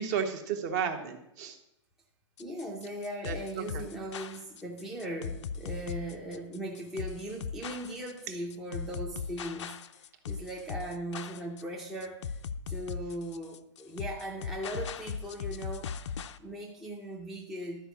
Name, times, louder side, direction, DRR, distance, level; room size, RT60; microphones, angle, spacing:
voice 1, 0.0-1.6 3.2-3.8, right 7 dB, 35° right, 6 dB, 1.2 m, -33 dB
sound 1, 2.4-16.4, left 6 dB, 80° left, 0.6 m, -39 dB
voice 2, 2.4-12.4 12.7-17.9, right 1 dB, ahead, -2 dB, 0.6 m, -39 dB
12.5 x 4.7 x 7.2 m, 0.81 s
hypercardioid pair, 170°, 15 cm